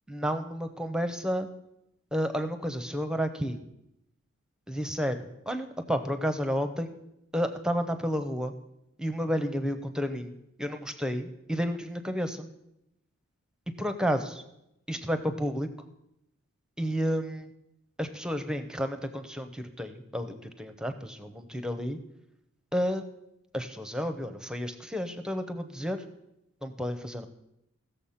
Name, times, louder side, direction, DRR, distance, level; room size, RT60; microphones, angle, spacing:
voice 1, 0.1-1.5 2.1-3.6 4.7-6.9 7.3-8.5 9.0-12.5 13.8-14.4 14.9-15.7 16.8-17.5 18.0-22.0 22.7-23.1 23.5-26.0 26.6-27.3, equal, 5° right, 9 dB, 0.6 m, -31 dB
16.0 x 6.9 x 5.7 m, 0.84 s
head